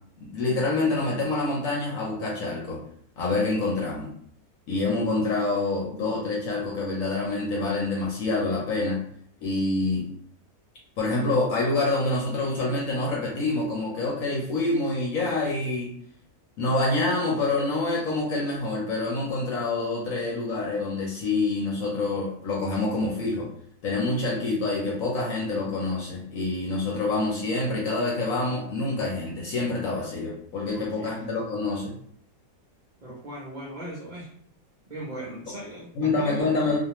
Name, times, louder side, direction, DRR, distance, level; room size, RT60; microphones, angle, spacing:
voice 1, 0.2-2.8 3.2-4.1 4.7-9.0 9.4-10.1 11.0-15.9 16.6-23.5 23.8-31.9 36.0-36.8, left 2 dB, 65° left, -4 dB, 1.0 m, -26 dB
voice 2, 30.7-31.2 33.0-34.3 34.9-35.9 36.2-36.6, right 1 dB, 60° right, -5 dB, 0.4 m, -38 dB
2.4 x 2.4 x 2.9 m, 0.62 s
omnidirectional pair, 1.6 m